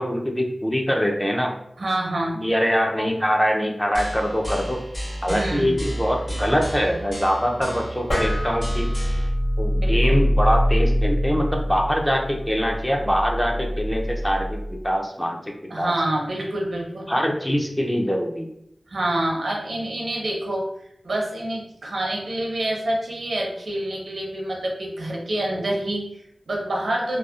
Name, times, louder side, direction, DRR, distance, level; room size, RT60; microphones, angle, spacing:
voice 1, 0.0-1.5 2.4-4.8 5.2-8.9 9.6-15.9 17.1-18.5, equal, 10° left, 2 dB, 0.4 m, -23 dB
voice 2, 1.8-2.5 5.3-5.8 9.8-10.2 15.7-17.1 18.9-20.7 21.0-27.2, right 1 dB, 85° right, -1 dB, 0.6 m, -27 dB
sound 1, 3.9-9.3, right 1 dB, 35° left, 1.1 m, -33 dB
sound 2, 8.1-14.8, equal, 80° left, 0.9 m, -24 dB
2.6 x 2.0 x 2.3 m, 0.73 s
cardioid pair, 40°, 0 cm